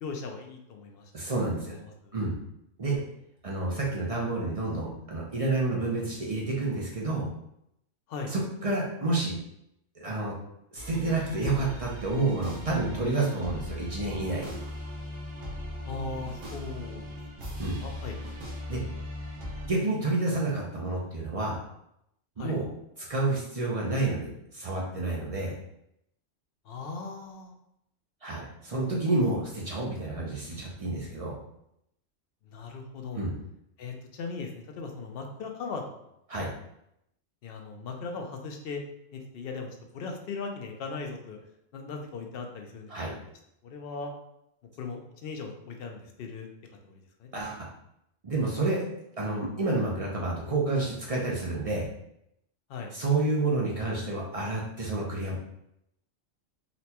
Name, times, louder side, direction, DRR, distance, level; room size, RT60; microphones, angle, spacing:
voice 1, 0.0-2.1 8.1-8.3 15.9-17.2 17.8-18.2 22.4-22.6 26.6-27.6 32.5-33.2 33.8-36.1 37.4-38.8 39.1-39.7 39.9-41.4 41.7-43.2 43.6-44.1 44.8-46.5 46.8-47.3 52.7-52.9, left 4 dB, 65° left, 3 dB, 0.6 m, -38 dB
voice 2, 1.1-1.7 2.1-2.3 2.8-3.0 3.4-7.3 8.3-9.4 10.0-10.3 10.7-14.6 17.6-17.8 18.7-18.8 19.6-21.6 22.4-22.7 23.1-25.5 28.2-31.4 33.1-33.3 36.3-36.5 42.9-43.1 47.3-47.7 48.2-48.8 49.2-51.9 52.9-55.4, right 2 dB, 45° right, -3 dB, 0.4 m, -29 dB
sound 1, 10.8-19.7, equal, 75° right, 1.3 m, -39 dB
4.0 x 2.2 x 2.8 m, 0.78 s
omnidirectional pair, 1.4 m